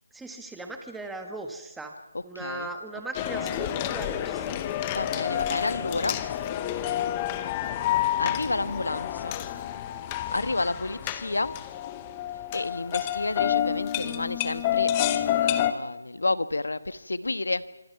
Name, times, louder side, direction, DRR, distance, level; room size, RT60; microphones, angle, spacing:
voice 1, 0.1-1.9 2.2-4.6, right 2 dB, 5° right, 4 dB, 1.5 m, -38 dB
voice 2, 2.1-2.7 4.9-6.2 8.2-9.4 10.3-11.5 12.5-17.7, left 2 dB, 90° left, 13 dB, 1.3 m, -30 dB
sound 1, 3.1-15.7, left 11 dB, 20° left, 0.9 m, -29 dB
26.0 x 24.5 x 5.9 m, 0.99 s
figure-of-eight pair, 170°, 0 cm